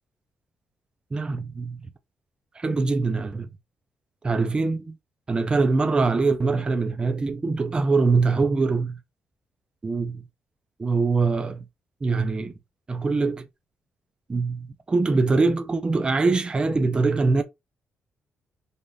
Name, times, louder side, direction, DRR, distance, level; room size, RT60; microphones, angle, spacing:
voice 1, 1.1-1.8 2.6-3.5 4.2-5.0 5.3-9.0 9.8-10.2 10.8-11.6 12.0-12.5 12.9-13.4 14.3-17.4, right 3 dB, 25° right, 0.5 m, -23 dB
3.4 x 2.5 x 3.9 m
cardioid pair, 105°, 4 cm